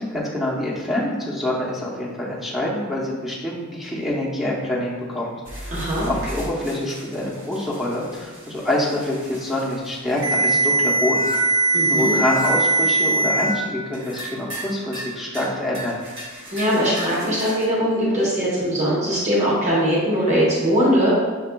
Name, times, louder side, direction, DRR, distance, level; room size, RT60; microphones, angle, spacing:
voice 1, 0.0-5.8 6.1-11.5 11.9-16.0, left 1 dB, ahead, -5 dB, 0.7 m, -26 dB
sound 1, 5.5-13.5 13.9-14.7 14.9-15.5 15.7-17.6, right 2 dB, 65° right, 1.1 m, -24 dB
voice 2, 5.7-6.1 11.7-12.2 16.5-21.1, equal, 35° right, -7 dB, 1.0 m, -21 dB
6.6 x 2.3 x 2.2 m, 1.4 s
head